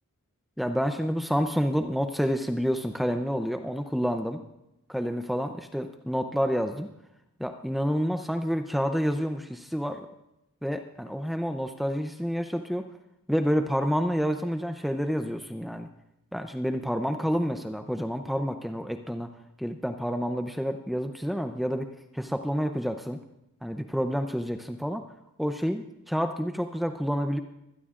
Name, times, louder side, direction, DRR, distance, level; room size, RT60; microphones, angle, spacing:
voice 1, 0.6-4.4 4.9-6.9 7.4-10.1 10.6-12.9 13.3-15.9 16.3-19.3 19.6-21.9 22.1-23.2 23.6-25.0 25.4-27.4, equal, ahead, 5 dB, 0.6 m, -29 dB
24.0 x 17.0 x 2.5 m, 0.86 s
head